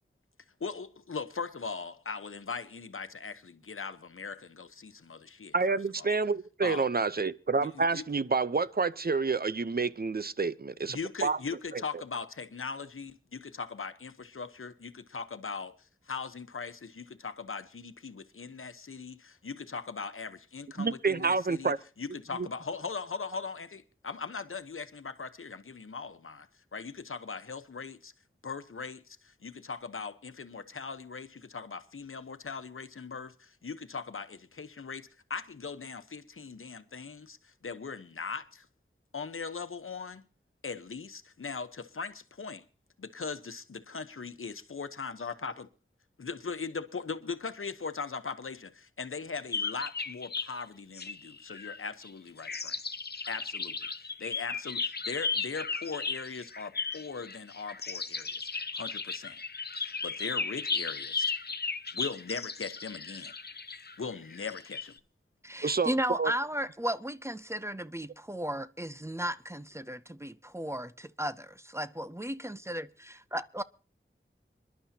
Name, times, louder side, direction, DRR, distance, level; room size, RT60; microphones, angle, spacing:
voice 1, 0.6-6.2 6.6-6.9 7.6-8.0 10.9-15.7 16.1-28.1 28.4-38.7 39.1-40.2 40.6-42.6 43.0-45.7 46.2-52.8 53.3-53.9 54.2-59.4 59.7-61.2 62.0-63.3 64.0-64.9, left 5 dB, 80° left, 1.0 m, -40 dB
voice 2, 5.5-11.4 11.7-11.8 20.8-21.8 22.4-22.5 65.6-66.3, right 4 dB, 45° right, 0.7 m, -29 dB
sound 1, 49.5-50.5 50.9-52.1 52.4-64.9, left 4 dB, 50° left, 0.7 m, -35 dB
voice 3, 65.4-72.9 73.3-73.6, right 1 dB, 15° right, 0.6 m, -35 dB
26.5 x 11.5 x 2.8 m
wide cardioid pair, 60°, 21 cm